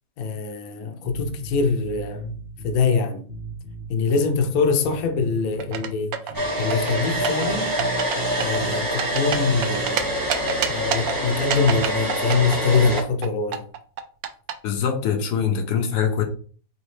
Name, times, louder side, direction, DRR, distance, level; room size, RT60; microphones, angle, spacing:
voice 1, 0.2-2.4 2.6-3.2 3.9-6.1 6.6-7.8 8.4-10.1 10.7-13.7, left 5 dB, 65° left, 1.1 m, -23 dB
sound 1, 1.0-2.8 3.3-5.9 6.3-8.9 9.3-11.8 12.3-12.9, right 4 dB, 35° right, 1.2 m, -37 dB
sound 2, 5.6-6.3 6.7-7.5 7.8-8.2 8.4-10.0 10.3-11.1 11.5-13.3 13.5-14.5, right 8 dB, 70° right, 0.9 m, -26 dB
Domestic sounds home sounds, 6.3-13.0, equal, 15° right, 0.8 m, -26 dB
voice 2, 14.6-16.2, left 7 dB, 80° left, 1.3 m, -23 dB
4.1 x 3.2 x 3.1 m
omnidirectional pair, 1.8 m